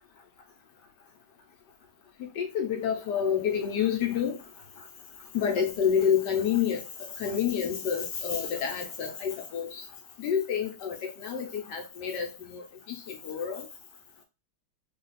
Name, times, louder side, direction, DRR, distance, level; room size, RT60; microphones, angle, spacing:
voice 1, 2.4-4.4 5.3-6.8 7.2-9.8 10.2-12.6 12.9-13.6, left 8 dB, 70° left, 1.1 m, -28 dB
3.1 x 2.4 x 3.9 m
omnidirectional pair, 2.2 m